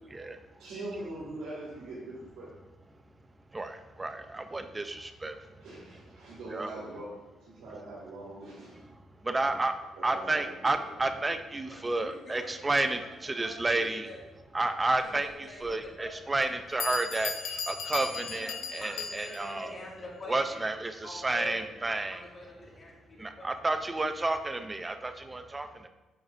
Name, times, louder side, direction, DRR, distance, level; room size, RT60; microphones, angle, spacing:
voice 1, 0.6-2.5 5.6-7.1 7.4-8.8 9.4-9.5 10.0-10.5 10.9-11.0, right 2 dB, 90° right, -9 dB, 2.1 m, -42 dB
voice 2, 3.5-5.6 6.5-6.7 9.2-9.7 10.0-14.1 14.5-19.8 20.3-22.3 23.2-25.9, right 2 dB, 20° right, 8 dB, 0.5 m, -31 dB
voice 3, 11.7-12.6 13.4-14.2 15.1-16.1 18.3-18.5 18.8-20.6 21.0-21.6 22.1-23.5, left 1 dB, 40° left, -3 dB, 2.1 m, -45 dB
Bell, 15.6-15.7 16.4-16.5 16.8-19.6, left 6 dB, 75° left, 0.5 m, -37 dB
7.4 x 5.2 x 2.6 m, 1.1 s
cardioid pair, 90°, 0 cm